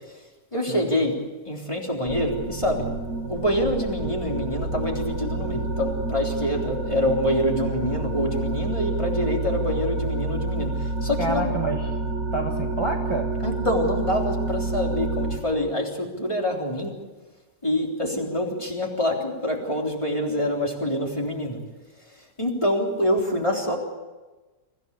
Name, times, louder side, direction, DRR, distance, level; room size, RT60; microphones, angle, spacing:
voice 1, 0.5-1.2 1.5-2.9 3.3-11.5 13.4-16.9 17.6-21.6 22.4-23.8, left 1 dB, 20° left, 0 dB, 3.6 m, -26 dB
sound 1, 2.1-15.4, right 2 dB, 65° right, 3.1 m, -28 dB
voice 2, 11.2-11.9 12.3-13.3, right 2 dB, 20° right, 1 dB, 1.6 m, -28 dB
24.5 x 16.0 x 8.4 m, 1.2 s
omnidirectional pair, 1.7 m